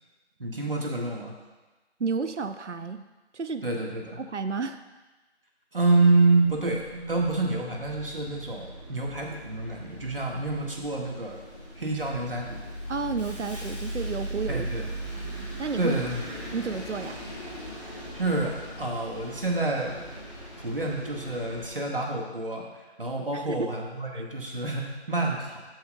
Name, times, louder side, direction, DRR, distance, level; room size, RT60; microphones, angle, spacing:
voice 1, 0.4-1.3 3.6-4.2 5.7-11.4 11.8-12.6 14.5-14.9 15.8-16.2 18.1-20.0 20.6-25.6, right 2 dB, 50° right, 0 dB, 1.6 m, -27 dB
voice 2, 2.0-3.1 3.3-3.7 4.2-4.8 12.9-14.7 15.3-15.9 16.5-17.2 23.3-23.6, right 5 dB, 85° right, 9 dB, 0.7 m, -31 dB
Bus, 6.4-21.7, right 1 dB, 25° left, 2.2 m, -39 dB
13.0 x 8.6 x 2.3 m, 1.2 s
figure-of-eight pair, 165°, 34 cm